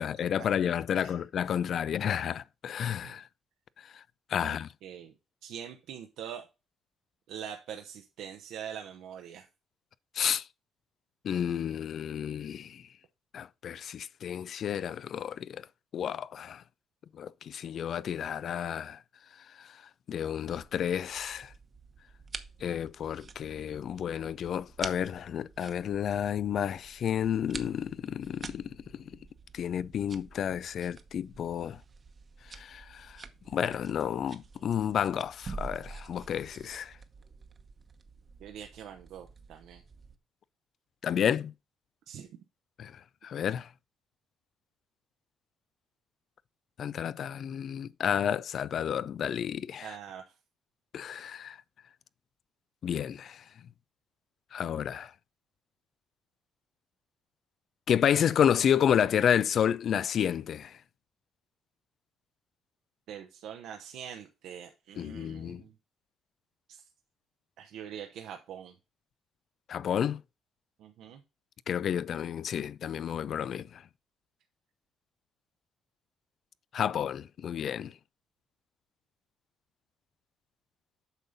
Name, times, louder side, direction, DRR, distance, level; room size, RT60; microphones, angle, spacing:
voice 1, 0.0-3.2 3.9-4.0 4.3-4.7 10.2-10.4 11.2-12.8 13.3-15.6 15.9-16.6 17.2-19.0 19.6-19.7 20.1-21.5 22.6-29.0 29.5-31.8 32.5-33.2 33.5-36.9 41.0-41.5 42.8-42.9 43.2-43.7 46.8-49.9 50.9-51.6 52.8-53.4 54.5-55.1 57.9-60.8 65.0-65.6 69.7-70.2 71.7-73.8 76.7-77.9, left 9 dB, 65° left, 0.3 m, -30 dB
voice 2, 4.4-5.1 5.4-6.5 7.3-9.5 38.4-39.8 42.1-42.3 49.8-50.3 63.1-65.7 66.7-66.9 67.6-68.8 70.8-71.2, right 9 dB, 85° right, 0.8 m, -44 dB
sound 1, 20.5-40.2, right 4 dB, 40° right, 0.9 m, -48 dB
8.2 x 5.4 x 4.0 m
cardioid pair, 90°, 0 cm